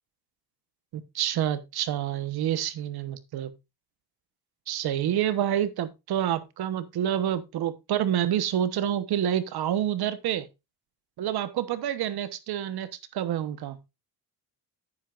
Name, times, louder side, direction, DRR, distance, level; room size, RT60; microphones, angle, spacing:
voice 1, 0.9-3.5 4.7-10.5 11.2-12.9 13.1-13.8, right 10 dB, 75° right, 1.2 m, -28 dB
9.4 x 9.3 x 2.5 m
cardioid pair, 140°, 38 cm